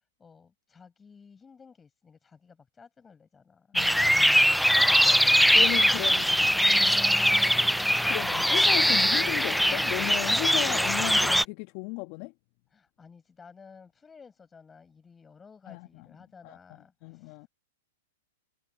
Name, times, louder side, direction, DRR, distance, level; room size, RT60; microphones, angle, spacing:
voice 1, 0.0-4.1 12.7-17.5, left 5 dB, 15° left, 7.9 m, -54 dB
voice 2, 3.7-4.3 5.5-6.5 6.8-7.0 8.1-12.3 15.7-16.1 16.4-17.5, left 27 dB, 45° left, 1.2 m, -35 dB
sound 1, 3.8-11.4, equal, ahead, 0.3 m, -22 dB
hypercardioid pair, 115°, 0 cm